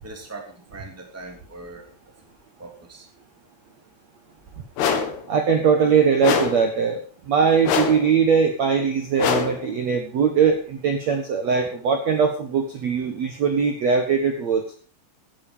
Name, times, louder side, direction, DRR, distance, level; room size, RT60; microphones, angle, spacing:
voice 1, 0.0-2.1 2.6-3.1, right 2 dB, 5° right, 2 dB, 1.7 m, -41 dB
sound 1, 4.8-5.2 6.2-6.7 7.6-8.1 9.2-9.7, left 6 dB, 65° left, 3.5 m, -23 dB
voice 2, 5.3-14.6, right 6 dB, 70° right, 5 dB, 1.6 m, -21 dB
16.5 x 9.9 x 5.2 m, 0.41 s
omnidirectional pair, 5.3 m